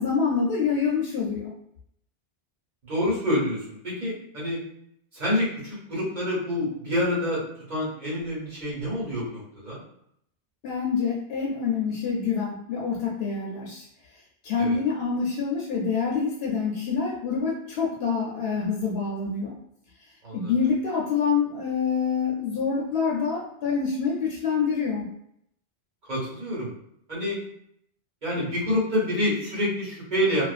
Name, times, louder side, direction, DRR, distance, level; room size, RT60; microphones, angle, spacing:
voice 1, 0.0-1.5 10.6-13.9 14.4-19.6 20.3-25.1, left 5 dB, 75° left, -3 dB, 0.8 m, -26 dB
voice 2, 2.8-4.6 5.1-9.8 14.6-14.8 20.2-20.5 26.1-26.7 27.1-27.4 28.2-30.4, left 1 dB, 45° right, -7 dB, 1.1 m, -27 dB
2.5 x 2.2 x 2.4 m, 0.72 s
omnidirectional pair, 1.1 m